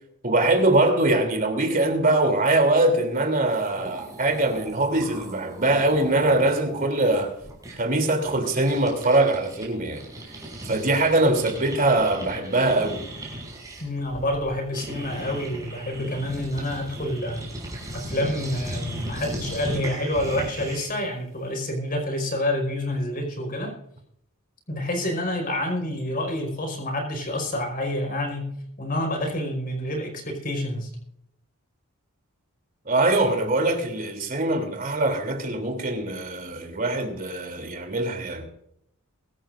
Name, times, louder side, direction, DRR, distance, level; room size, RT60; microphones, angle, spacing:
voice 1, 0.2-7.3 7.7-10.0 10.6-13.0 32.8-38.5, right 2 dB, 40° right, 3.2 m, -22 dB
sound 1, 3.2-3.3 3.5-9.7 9.9-21.0, right 1 dB, 15° right, 5.9 m, -37 dB
voice 2, 13.8-17.5 17.9-23.8 24.7-30.9, left 1 dB, 40° left, 5.0 m, -28 dB
23.5 x 13.5 x 2.6 m
head